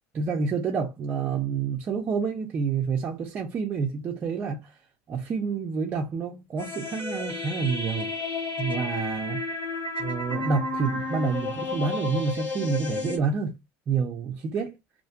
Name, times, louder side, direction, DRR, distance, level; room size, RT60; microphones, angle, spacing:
voice 1, 0.1-4.8 5.1-8.1 8.6-9.4 10.0-13.6 13.9-14.7, right 5 dB, 25° right, 0.4 m, -28 dB
sound 1, 6.6-13.2, left 3 dB, 40° left, 1.0 m, -32 dB
2.4 x 2.2 x 2.6 m
cardioid pair, 165°, 6 cm